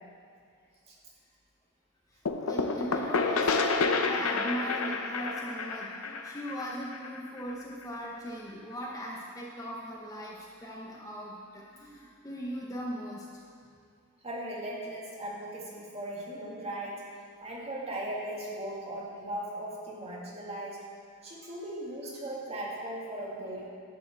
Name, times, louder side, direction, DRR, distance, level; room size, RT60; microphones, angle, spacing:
sound 1, 2.3-7.8, left 4 dB, 65° left, 0.7 m, -30 dB
voice 1, 2.4-13.4, equal, 15° left, -3 dB, 0.9 m, -39 dB
voice 2, 14.2-17.0 17.4-20.8 21.2-23.7, right 1 dB, 25° right, -4 dB, 1.9 m, -38 dB
11.5 x 5.7 x 7.4 m, 2.2 s
head